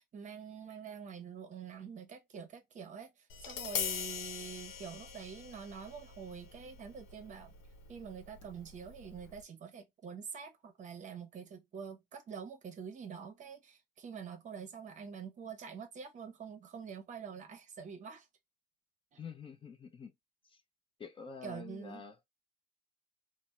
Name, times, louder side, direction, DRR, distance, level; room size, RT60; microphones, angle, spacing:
voice 1, 0.0-7.5 7.9-18.3 19.1-19.2 21.4-22.0, right 6 dB, 40° right, 0.8 m, -46 dB
Tap, 3.3-9.4, left 8 dB, 80° left, 0.8 m, -43 dB
voice 2, 19.2-20.1 20.5-20.6 21.0-22.3, left 5 dB, 25° left, 0.6 m, -47 dB
2.7 x 2.0 x 3.2 m
supercardioid pair, 110°, 20 cm